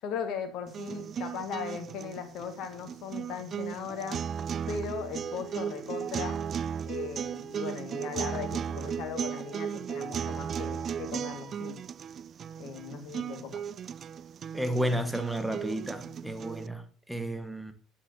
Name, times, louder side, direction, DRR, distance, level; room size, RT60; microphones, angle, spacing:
voice 1, 0.0-4.2 4.7-6.4 6.9-11.8 12.6-13.6, left 7 dB, 60° left, 1.9 m, -38 dB
sound 1, 0.7-16.7, right 7 dB, 40° right, 0.4 m, -36 dB
voice 2, 14.5-17.7, equal, 5° right, 1.7 m, -32 dB
11.0 x 7.3 x 2.9 m
hypercardioid pair, 60°, 0 cm